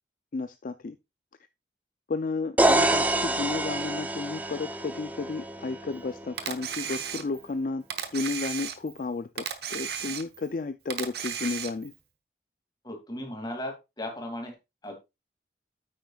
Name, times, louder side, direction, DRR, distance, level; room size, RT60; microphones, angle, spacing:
voice 1, 0.3-1.0 2.1-7.8 8.1-11.9, left 3 dB, 50° left, 0.4 m, -33 dB
sound 1, 2.6-6.4, right 1 dB, 10° right, 0.6 m, -27 dB
Camera, 6.4-7.5 7.9-9.0 9.4-10.5 10.9-12.0, right 8 dB, 60° right, 1.0 m, -34 dB
voice 2, 12.8-14.5 14.8-14.9, left 1 dB, 25° left, 2.5 m, -36 dB
9.1 x 8.8 x 2.4 m
head